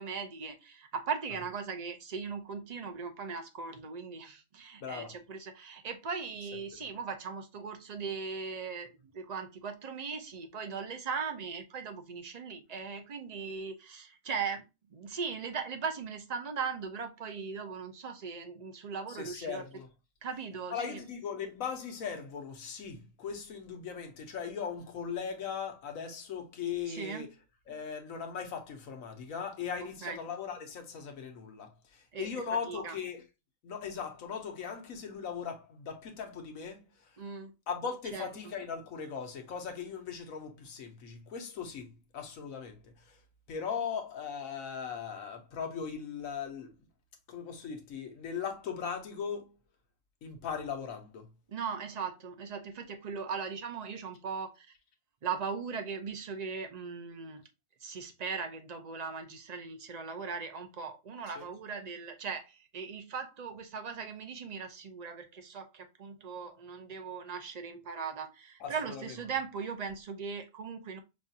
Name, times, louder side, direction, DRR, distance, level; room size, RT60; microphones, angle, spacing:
voice 1, 0.0-14.6 14.9-19.6 20.2-21.0 26.9-27.3 30.0-30.2 32.1-32.4 32.7-32.9 37.2-37.5 38.1-38.3 51.5-54.7 55.2-57.4 57.8-71.0, right 5 dB, 40° right, 0.6 m, -39 dB
voice 2, 4.8-5.1 19.1-19.9 20.7-27.3 27.7-33.2 33.6-37.1 37.7-43.2 43.5-46.8 47.3-49.5 50.2-51.3 61.4-61.5 68.6-69.1, left 6 dB, 80° left, 1.3 m, -39 dB
5.3 x 2.4 x 2.7 m
omnidirectional pair, 1.4 m